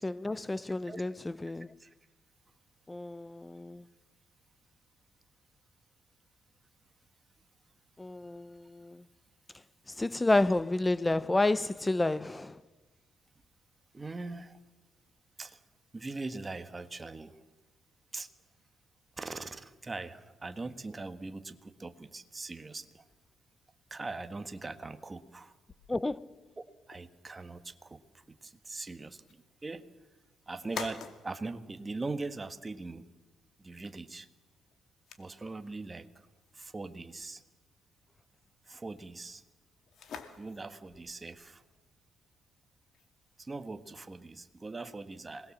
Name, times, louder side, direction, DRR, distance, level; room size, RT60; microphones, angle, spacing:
voice 1, 0.0-1.7 2.9-3.8 8.0-9.0 10.0-12.6 25.9-26.3, left 2 dB, 15° left, 0.7 m, -30 dB
voice 2, 13.9-14.6 15.4-15.6 15.9-17.4 18.1-18.3 19.2-23.0 23.9-25.5 26.6-29.9 30.5-33.1 33.6-34.3 35.2-36.1 36.5-37.4 38.7-39.4 40.4-41.6 43.4-45.5, right 3 dB, 25° right, 1.6 m, -41 dB
sound 1, 25.7-44.1, left 6 dB, 65° left, 2.4 m, -51 dB
26.5 x 20.5 x 7.4 m
cardioid pair, 90°, 0 cm